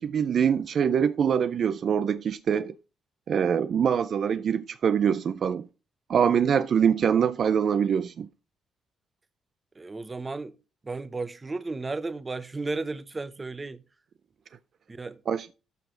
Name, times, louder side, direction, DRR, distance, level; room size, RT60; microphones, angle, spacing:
voice 1, 0.0-2.7 3.3-5.7 6.1-8.3 15.3-15.5, right 7 dB, 50° right, 0.4 m, -24 dB
voice 2, 9.8-10.5 10.8-13.8 14.9-15.2, right 3 dB, 20° right, 0.8 m, -34 dB
13.5 x 4.8 x 3.8 m
cardioid pair, 135°, 0 cm